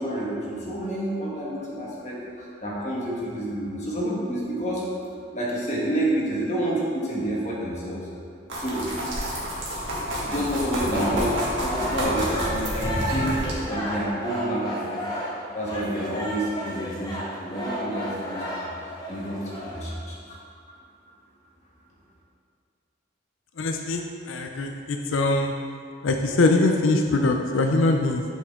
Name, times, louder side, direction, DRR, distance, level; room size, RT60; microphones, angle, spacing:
voice 1, 0.0-4.8 5.3-8.0 8.6-8.9 10.2-13.4 13.7-15.2 15.5-18.4 18.7-18.8 19.1-20.4, right 1 dB, 35° left, -5 dB, 1.5 m, -29 dB
sound 1, 8.5-13.5, equal, 75° right, 1.9 m, -29 dB
sound 2, 10.9-19.8, equal, 20° left, 1.1 m, -33 dB
voice 2, 23.6-25.5 26.0-28.2, left 2 dB, 85° left, 4 dB, 0.5 m, -22 dB
7.2 x 6.3 x 3.7 m, 2.2 s
head